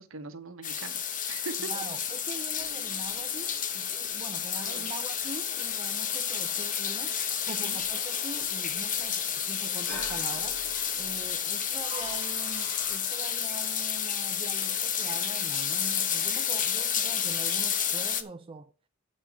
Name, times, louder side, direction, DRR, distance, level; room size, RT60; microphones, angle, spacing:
voice 1, 0.0-1.7 4.6-4.9 7.4-7.8, right 3 dB, 65° right, 1.1 m, -42 dB
sound 1, 0.6-18.2, left 8 dB, 40° left, 0.8 m, -30 dB
voice 2, 1.6-7.2 7.5-10.6 11.0-18.7, right 3 dB, 25° right, 0.5 m, -43 dB
sound 2, 2.6-13.0, left 1 dB, 80° left, 5.9 m, -48 dB
7.5 x 5.6 x 7.0 m
head